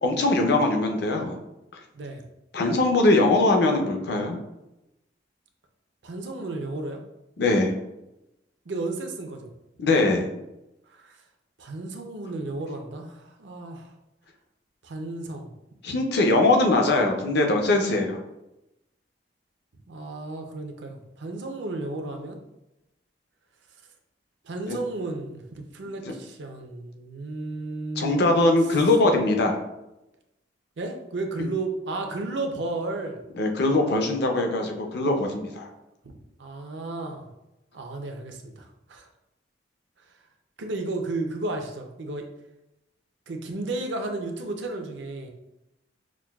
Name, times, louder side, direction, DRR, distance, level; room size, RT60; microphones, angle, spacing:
voice 1, 0.0-1.4 2.5-4.4 7.4-7.7 9.8-10.3 15.8-18.2 24.7-24.8 26.1-26.2 28.0-29.6 33.4-35.7, left 2 dB, 60° left, 3 dB, 0.6 m, -21 dB
voice 2, 6.0-7.0 8.7-9.5 10.9-11.2 11.6-13.9 14.8-15.5 19.9-22.4 24.4-28.3 30.8-33.2 36.0-37.3 37.7-39.1 40.6-42.3 43.3-45.3, right 2 dB, 70° right, 4 dB, 0.6 m, -33 dB
6.0 x 2.2 x 2.3 m, 0.92 s
head